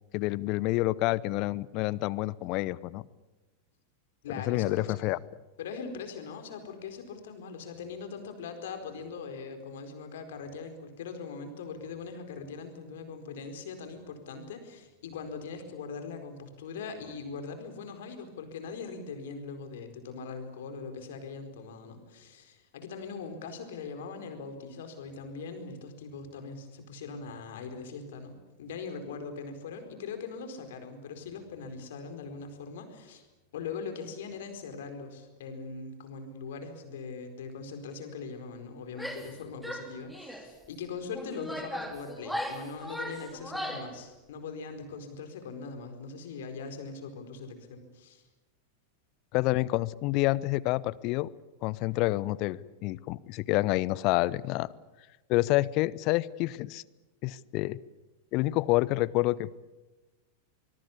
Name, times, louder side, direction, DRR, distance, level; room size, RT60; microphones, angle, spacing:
voice 1, 0.1-3.0 4.5-5.2 49.3-51.3 51.6-54.7 55.3-56.8 57.2-57.8 58.3-59.7, left 19 dB, 40° left, 22 dB, 0.8 m, -28 dB
voice 2, 4.2-5.1 5.6-33.3 33.5-48.2, left 5 dB, 55° left, 7 dB, 4.5 m, -41 dB
Female speech woman speaking / Yell, 38.9-39.4 39.6-40.5 41.1-44.0, equal, ahead, 3.3 m, -37 dB
25.0 x 22.5 x 8.5 m, 1.1 s
figure-of-eight pair, 90°, 0 cm